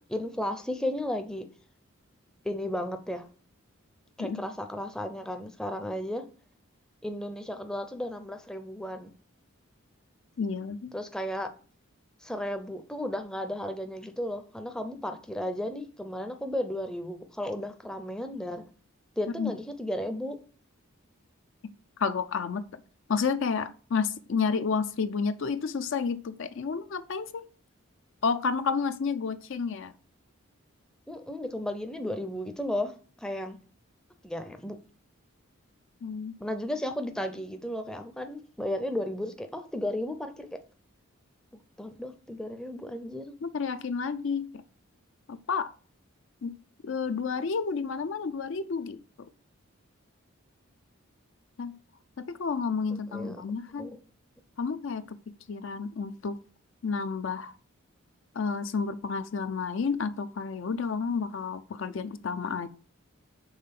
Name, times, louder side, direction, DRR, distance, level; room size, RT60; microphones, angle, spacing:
voice 1, 0.0-1.4 2.4-3.3 4.2-6.2 7.0-9.1 10.9-11.5 12.2-18.7 19.2-20.4 31.1-33.6 34.2-34.8 36.4-40.6 41.5-43.4 52.9-53.4 53.8-54.0, left 1 dB, 5° left, 0.5 m, -34 dB
voice 2, 10.4-10.9 19.4-19.5 22.0-22.6 23.1-27.4 28.2-29.9 36.0-36.3 43.4-44.6 45.3-45.7 46.4-49.3 51.6-51.8 52.2-53.9 54.6-55.2 55.5-56.4 56.8-57.5 58.3-62.7, left 5 dB, 60° left, 0.4 m, -31 dB
5.6 x 3.7 x 5.8 m
head